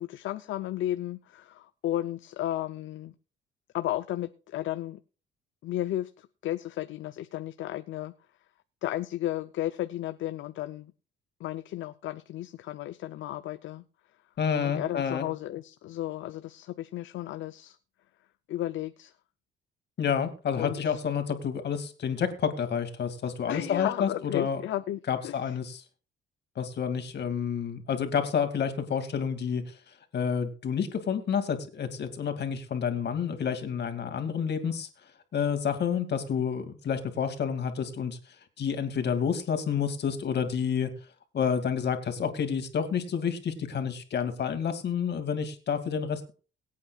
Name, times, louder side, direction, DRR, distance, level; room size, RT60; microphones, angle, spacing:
voice 1, 0.0-3.1 3.7-5.0 5.6-8.1 8.8-10.9 11.4-13.8 14.6-17.8 18.5-19.1 20.5-21.0 23.5-25.3, left 13 dB, 75° left, 0.6 m, -34 dB
voice 2, 14.4-15.3 20.0-24.6 25.1-25.8 26.6-34.9 35.3-38.2 38.6-40.9 41.3-46.3, left 7 dB, 60° left, 2.4 m, -29 dB
22.5 x 8.5 x 2.4 m
cardioid pair, 90°, 20 cm